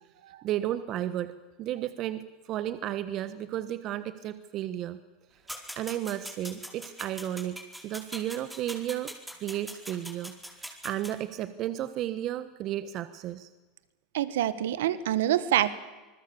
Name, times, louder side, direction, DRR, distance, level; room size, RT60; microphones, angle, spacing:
voice 1, 0.4-5.0 5.8-9.1 9.4-13.5, right 12 dB, 50° right, 13 dB, 1.3 m, -33 dB
sound 1, 5.5-11.1, equal, 5° right, 4.6 m, -42 dB
voice 2, 14.1-15.7, right 12 dB, 80° right, 16 dB, 1.5 m, -26 dB
27.0 x 21.0 x 7.1 m, 1.2 s
hypercardioid pair, 90°, 0 cm